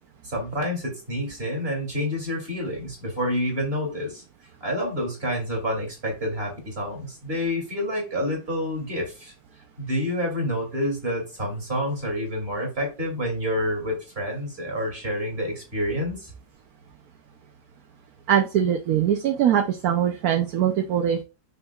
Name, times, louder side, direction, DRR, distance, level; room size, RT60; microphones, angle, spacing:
voice 1, 0.2-4.2 4.6-9.3 9.8-16.3, equal, 30° right, 1 dB, 2.9 m, -28 dB
voice 2, 18.3-21.2, right 9 dB, 65° right, 6 dB, 1.0 m, -22 dB
6.7 x 5.9 x 2.4 m, 0.30 s
omnidirectional pair, 2.0 m